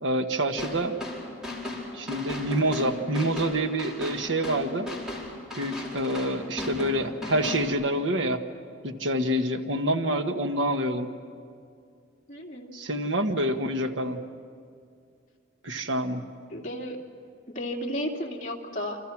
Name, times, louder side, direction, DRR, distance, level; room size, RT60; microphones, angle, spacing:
voice 1, 0.0-0.9 1.9-4.9 5.5-8.4 8.8-11.1 12.7-14.2 15.6-16.2, right 1 dB, 70° right, 6 dB, 1.5 m, -27 dB
sound 1, 0.6-7.7, left 2 dB, 5° right, 4.7 m, -36 dB
voice 2, 12.3-12.7 16.5-17.0 17.5-19.0, equal, 40° left, -1 dB, 2.9 m, -33 dB
28.5 x 26.5 x 6.1 m, 2.3 s
head